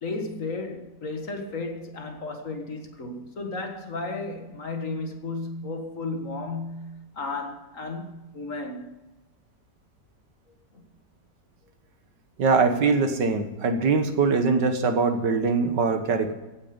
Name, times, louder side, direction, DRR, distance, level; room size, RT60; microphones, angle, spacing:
voice 1, 0.0-9.0 10.7-10.8, left 3 dB, 50° left, 2.0 m, -34 dB
voice 2, 12.4-16.3, right 4 dB, 75° right, 1.9 m, -22 dB
16.0 x 9.6 x 5.2 m
omnidirectional pair, 1.9 m